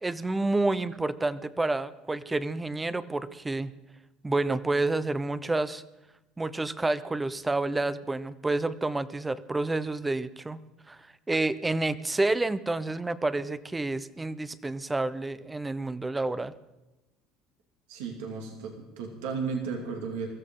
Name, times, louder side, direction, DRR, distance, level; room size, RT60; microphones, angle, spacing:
voice 1, 0.0-3.7 4.2-5.8 6.4-10.6 10.9-11.0 11.3-16.5, right 2 dB, 15° right, 14 dB, 0.8 m, -29 dB
voice 2, 17.9-20.3, right 5 dB, 85° right, 0 dB, 2.7 m, -34 dB
23.0 x 14.0 x 3.9 m, 1.0 s
supercardioid pair, 95°, 0 cm